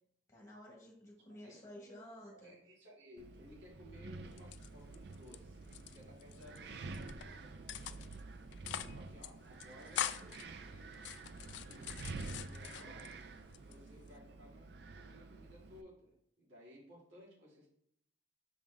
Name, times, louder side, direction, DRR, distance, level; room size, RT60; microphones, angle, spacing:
voice 1, 0.3-2.5, equal, 15° left, -1 dB, 1.5 m, -53 dB
voice 2, 2.1-8.1 8.7-10.9 11.4-13.1 13.6-14.7 14.9-17.7, left 1 dB, 85° right, -6 dB, 2.5 m, -58 dB
Wind, 3.2-15.8, right 3 dB, 60° right, 0.5 m, -49 dB
sound 1, 4.3-5.4 5.6-6.6 6.9-7.3 7.7-8.2 8.5-9.0 9.2-9.3 9.6-10.4 10.9-13.1 13.5-14.2, left 10 dB, 70° left, 0.3 m, -43 dB
5.8 x 4.9 x 3.5 m, 0.68 s
head